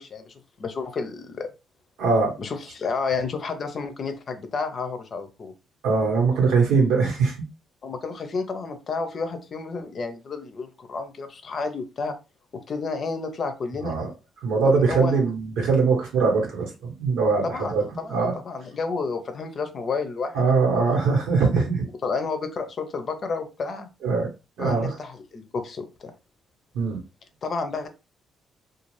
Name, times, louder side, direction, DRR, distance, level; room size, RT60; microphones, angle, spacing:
voice 1, 0.0-1.5 2.4-5.5 7.8-12.1 12.5-14.0 14.6-15.2 17.4-21.0 22.0-23.9 24.6-26.1 27.4-27.9, left 4 dB, 50° left, 7 dB, 0.6 m, -31 dB
voice 2, 2.0-2.3 5.8-7.3 13.8-14.1 14.4-17.8 18.1-18.4 20.3-21.9 24.0-24.3 24.6-24.9 26.7-27.0, right 4 dB, 90° right, 0 dB, 1.2 m, -21 dB
2.5 x 2.4 x 3.1 m, 0.29 s
cardioid pair, 90°, 0 cm